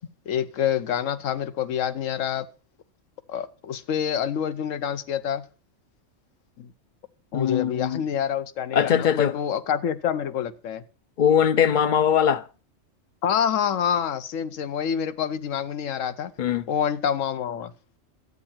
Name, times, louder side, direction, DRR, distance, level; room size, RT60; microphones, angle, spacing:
voice 1, 0.3-2.5 3.3-5.4 6.6-6.7 7.3-10.8 13.2-16.3 16.7-17.7, left 8 dB, 75° left, 1.1 m, -27 dB
voice 2, 7.3-8.0 8.7-9.3 11.2-12.4 16.4-16.6, left 8 dB, 50° left, 0.6 m, -21 dB
12.0 x 8.8 x 4.3 m
omnidirectional pair, 1.4 m